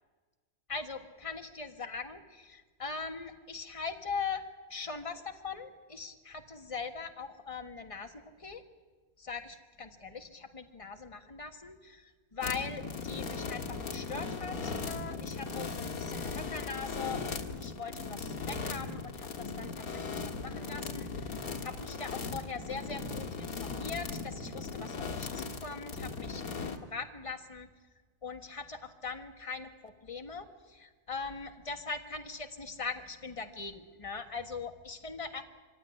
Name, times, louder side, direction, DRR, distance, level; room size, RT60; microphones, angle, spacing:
voice 1, 0.7-4.4 4.7-8.6 9.2-26.4 26.8-27.7 28.2-35.4, left 4 dB, 20° left, 5 dB, 1.4 m, -41 dB
sound 1, 12.4-26.8, left 4 dB, 65° left, 2.0 m, -38 dB
24.5 x 16.0 x 9.9 m, 1.4 s
omnidirectional pair, 1.6 m